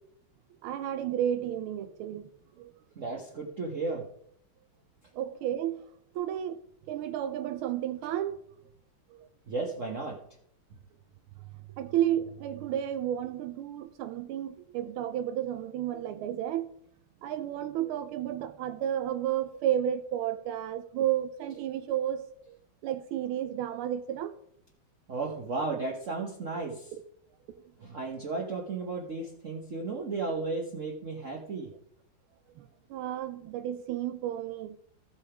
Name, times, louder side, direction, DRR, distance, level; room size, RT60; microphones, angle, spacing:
voice 1, 0.6-2.3 2.6-2.7 5.1-5.8 6.1-6.6 6.9-8.4 9.1-9.3 11.8-16.7 17.2-22.6 22.8-24.4 26.9-27.0 27.5-27.7 32.6-34.7, right 11 dB, 90° right, 1.5 m, -32 dB
voice 2, 3.0-4.1 9.5-10.2 25.1-26.9 27.8-31.7, right 3 dB, 45° right, 1.2 m, -34 dB
14.0 x 5.7 x 4.9 m
omnidirectional pair, 2.3 m